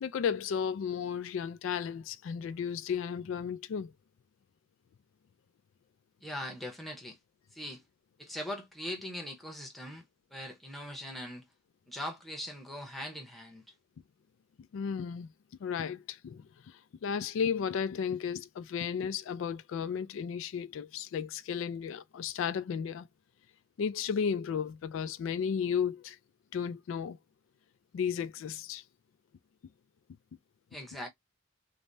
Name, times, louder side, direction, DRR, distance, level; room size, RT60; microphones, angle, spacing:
voice 1, 0.0-3.9 14.7-15.3 15.6-23.1 23.8-26.2 26.5-27.2 27.9-28.8, left 7 dB, 75° left, 0.3 m, -34 dB
voice 2, 6.2-7.2 7.5-7.8 8.2-11.5 11.9-13.6 30.7-31.1, left 1 dB, ahead, 0.7 m, -41 dB
3.3 x 2.1 x 2.6 m
head